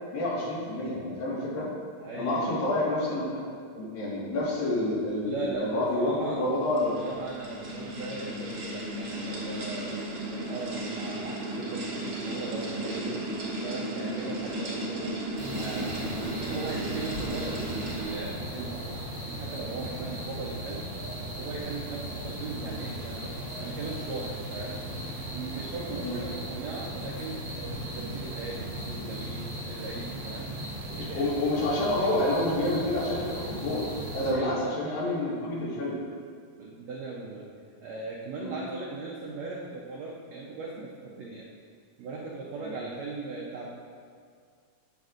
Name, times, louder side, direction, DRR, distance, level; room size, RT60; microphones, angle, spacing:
voice 1, 0.1-1.7 2.1-3.4 3.7-7.0 7.6-7.7 16.3-16.4 26.0-26.2 30.8-33.8 34.1-36.0 38.4-38.6 42.6-42.8, left 1 dB, 75° left, -6 dB, 3.5 m, -29 dB
voice 2, 2.0-2.6 5.2-6.4 6.8-13.3 13.6-15.2 15.5-18.9 19.3-20.9 21.2-24.8 25.1-30.5 30.9-31.3 34.3-34.8 36.6-37.5 37.8-41.5 42.0-43.7, right 3 dB, 85° right, -3 dB, 1.5 m, -38 dB
sound 1, 6.2-18.4, right 1 dB, 70° right, 1.0 m, -35 dB
sound 2, 15.4-34.3, equal, 25° right, 1.3 m, -37 dB
10.5 x 8.2 x 2.5 m, 2.1 s
omnidirectional pair, 4.1 m